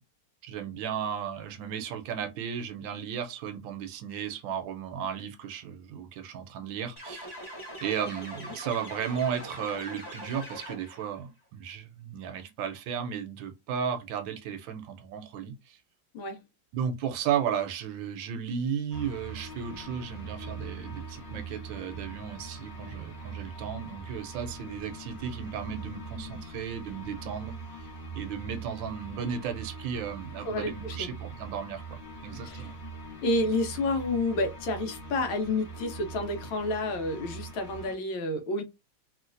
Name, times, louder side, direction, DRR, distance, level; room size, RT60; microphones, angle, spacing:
voice 1, 0.4-7.3 7.8-15.8 16.7-27.5 28.1-32.8, right 8 dB, 75° right, 1.3 m, -34 dB
sound 1, 7.0-11.1, equal, 15° left, 0.9 m, -42 dB
sound 2, 18.9-37.9, right 3 dB, 45° left, 0.9 m, -42 dB
voice 2, 30.4-31.1 32.4-32.6 33.2-38.6, left 2 dB, 80° left, 1.5 m, -30 dB
3.1 x 3.0 x 2.5 m
omnidirectional pair, 2.2 m